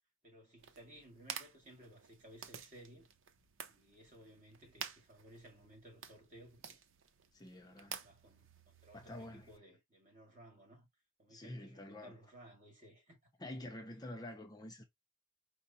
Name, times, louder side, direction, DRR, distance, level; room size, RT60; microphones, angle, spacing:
voice 1, 0.2-3.1 3.7-6.8 7.5-10.9 11.2-13.2, right 1 dB, 40° right, 2.3 m, -59 dB
sound 1, 0.6-9.6, right 7 dB, 70° right, 0.7 m, -51 dB
voice 2, 7.3-8.0 8.9-9.5 11.3-12.2 13.4-14.8, left 1 dB, 20° left, 0.7 m, -48 dB
5.0 x 2.1 x 4.1 m
head